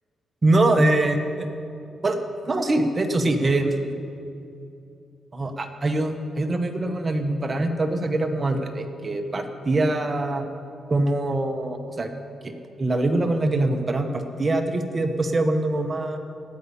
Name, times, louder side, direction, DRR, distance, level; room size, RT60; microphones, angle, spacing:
voice 1, 0.4-1.5 2.0-2.2 2.5-3.9 5.3-10.5 10.9-12.1 12.4-12.5 12.8-16.2, right 2 dB, 25° right, 6 dB, 0.9 m, -23 dB
16.5 x 5.5 x 9.7 m, 2.6 s
cardioid pair, 135°, 0 cm